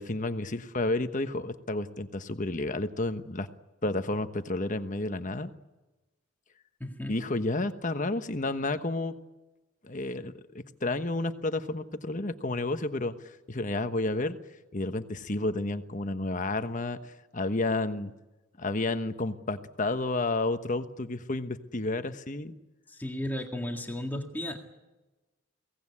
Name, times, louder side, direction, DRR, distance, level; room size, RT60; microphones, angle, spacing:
voice 1, 0.0-3.5 3.8-5.5 7.1-9.1 9.9-14.4 14.7-18.1 18.6-22.5, left 2 dB, 35° left, 9 dB, 1.2 m, -31 dB
voice 2, 6.8-7.2 22.9-24.6, left 1 dB, 10° left, 2 dB, 1.9 m, -34 dB
23.5 x 17.5 x 9.8 m, 1.1 s
head